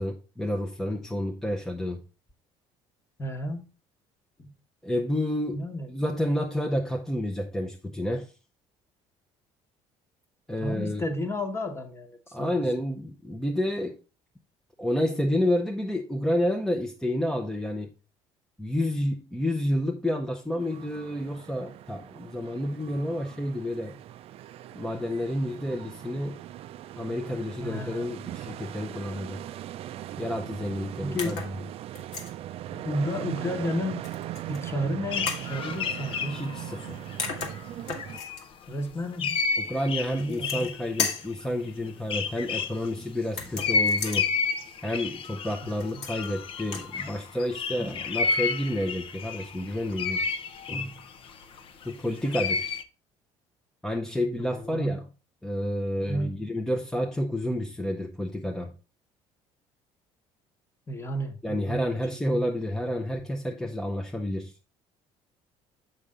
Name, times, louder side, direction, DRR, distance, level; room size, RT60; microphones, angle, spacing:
voice 1, 0.0-2.0 4.8-8.3 10.5-11.0 12.3-14.0 14.8-17.9 18.6-24.0 24.8-26.4 27.0-29.4 30.2-31.4 32.7-32.8 36.3-37.0 39.7-44.3 44.8-50.2 50.7-50.9 51.8-52.7 53.8-55.0 55.4-58.7 61.4-64.5, left 1 dB, 5° left, 0.7 m, -30 dB
voice 2, 3.2-3.7 4.4-4.5 5.5-5.9 10.6-12.6 27.6-28.1 31.0-31.4 32.8-34.1 34.5-36.5 38.7-39.4 39.8-40.8 45.6-46.3 54.4-55.0 56.1-56.5 60.9-62.5, equal, 20° left, 1.2 m, -33 dB
sound 1, 20.6-38.2, right 13 dB, 55° right, 0.4 m, -40 dB
sound 2, 31.2-31.6 31.9-32.3 34.0-34.6 35.3-35.5 36.8-36.9 37.2-38.4 40.2-40.7 41.0-41.3 43.3-44.2 45.8-46.3 46.6-46.9, left 5 dB, 65° left, 1.7 m, -34 dB
sound 3, 35.1-37.7 38.0-38.4 39.1-42.9 43.6-52.8, left 4 dB, 50° left, 0.7 m, -31 dB
6.6 x 5.6 x 3.7 m
cardioid pair, 105°, 12 cm